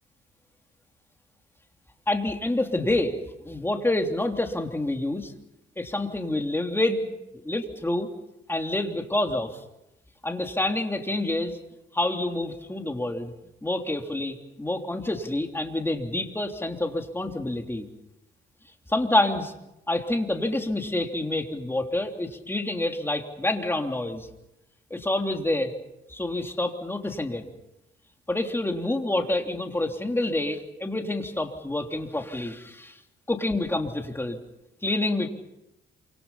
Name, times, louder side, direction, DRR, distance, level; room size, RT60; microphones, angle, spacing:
voice 1, 2.1-3.1 3.4-5.3 5.8-7.1 7.5-8.1 8.5-9.6 10.2-11.6 11.9-13.3 13.6-17.9 18.9-19.5 19.9-24.3 24.9-25.7 26.1-27.5 28.3-33.0 33.3-34.4 34.8-35.3, left 1 dB, 10° left, 4 dB, 3.1 m, -27 dB
28.0 x 26.0 x 5.7 m, 0.89 s
cardioid pair, 90°, 20 cm